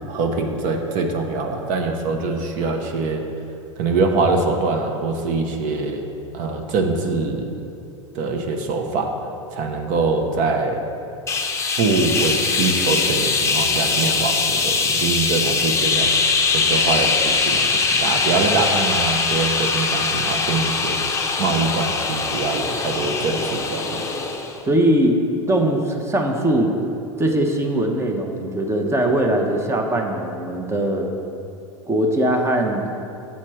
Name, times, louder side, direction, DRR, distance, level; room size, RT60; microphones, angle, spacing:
voice 1, 0.0-3.2 3.8-6.0 6.3-7.6 8.1-9.1 9.5-10.8 11.8-16.1 16.5-21.0 21.4-24.0, right 3 dB, 50° right, 4 dB, 0.9 m, -23 dB
sound 1, 11.3-24.6, left 4 dB, 15° left, 0.7 m, -22 dB
voice 2, 24.7-25.2 25.5-26.8 27.2-31.1 31.9-32.8, right 1 dB, 15° right, 3 dB, 0.9 m, -20 dB
7.3 x 4.3 x 6.3 m, 2.6 s
hypercardioid pair, 95°, 16 cm